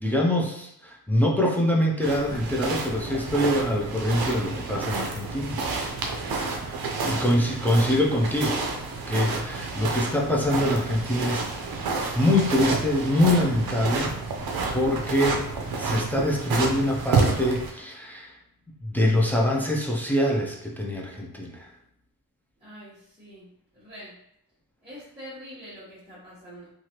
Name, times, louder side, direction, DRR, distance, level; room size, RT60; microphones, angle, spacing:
voice 1, 0.0-5.6 7.0-8.6 9.1-11.9 12.1-14.1 14.7-15.5 15.8-18.4 18.8-21.7, left 1 dB, 5° left, -1 dB, 0.3 m, -24 dB
sound 1, 2.0-17.7, right 3 dB, 70° right, 0.6 m, -29 dB
voice 2, 6.8-8.1 22.6-24.2 24.8-26.7, equal, 15° right, -12 dB, 1.0 m, -45 dB
3.1 x 2.4 x 2.8 m, 0.76 s
wide cardioid pair, 165°, 38 cm